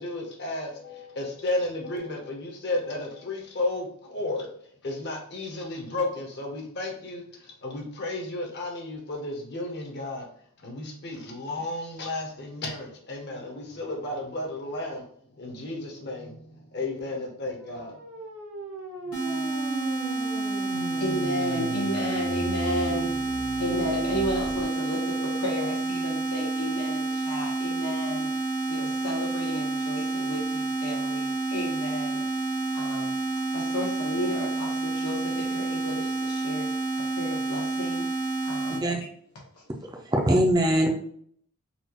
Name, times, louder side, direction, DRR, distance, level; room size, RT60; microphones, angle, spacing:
voice 1, 0.0-10.3 10.6-18.1 19.0-19.6, left 2 dB, 50° left, 1 dB, 0.8 m, -33 dB
sound 1, 17.5-24.6, right 1 dB, 60° right, 0.8 m, -38 dB
sound 2, 19.1-38.8, right 3 dB, 65° left, 1.3 m, -29 dB
voice 2, 20.7-23.1 23.6-28.3 28.7-32.2 32.7-33.1 33.5-36.7 37.2-38.0 38.4-38.8, equal, 80° left, -4 dB, 1.0 m, -33 dB
voice 3, 40.1-40.9, right 1 dB, 15° right, 1 dB, 0.5 m, -21 dB
4.1 x 2.4 x 2.9 m, 0.62 s
head